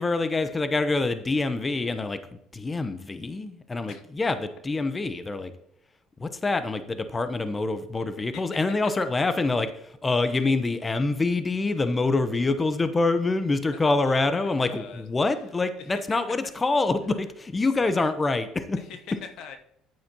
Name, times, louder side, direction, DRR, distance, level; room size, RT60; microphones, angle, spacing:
voice 1, 0.0-2.2 2.5-5.5 6.2-18.8, left 3 dB, 25° left, 10 dB, 0.8 m, -26 dB
voice 2, 13.7-15.1 15.8-16.2 17.8-17.9 18.8-19.6, left 7 dB, 70° left, 7 dB, 0.9 m, -42 dB
9.4 x 8.6 x 2.9 m, 0.74 s
supercardioid pair, 80°, 0 cm